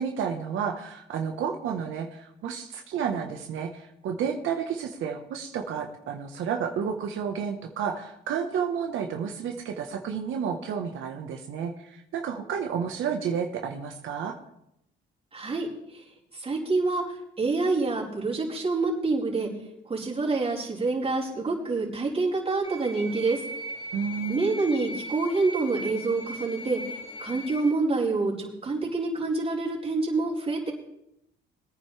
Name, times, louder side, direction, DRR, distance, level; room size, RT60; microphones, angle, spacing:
voice 1, 0.0-14.4 23.9-24.6, right 7 dB, 80° right, 3 dB, 1.3 m, -31 dB
voice 2, 15.3-16.0 16.3-19.5 19.9-23.4 24.3-30.7, right 3 dB, 30° right, -5 dB, 4.6 m, -27 dB
sound 1, 22.6-27.7, equal, 30° left, 2.5 m, -39 dB
21.5 x 9.7 x 3.4 m, 0.80 s
cardioid pair, 90°, 20 cm